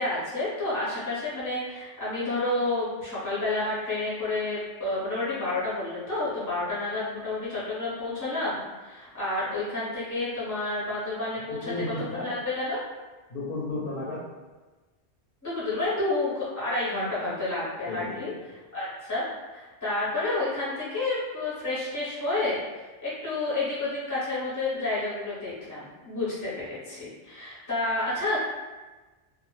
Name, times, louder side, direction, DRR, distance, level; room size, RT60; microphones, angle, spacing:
voice 1, 0.0-11.7 12.2-12.8 15.4-18.3 18.7-19.2 19.5-28.4, left 2 dB, 20° left, -9 dB, 0.5 m, -30 dB
voice 2, 11.5-12.3 13.3-14.3 17.8-18.4, left 2 dB, 60° left, -5 dB, 0.6 m, -33 dB
2.0 x 2.0 x 3.0 m, 1.2 s
omnidirectional pair, 1.2 m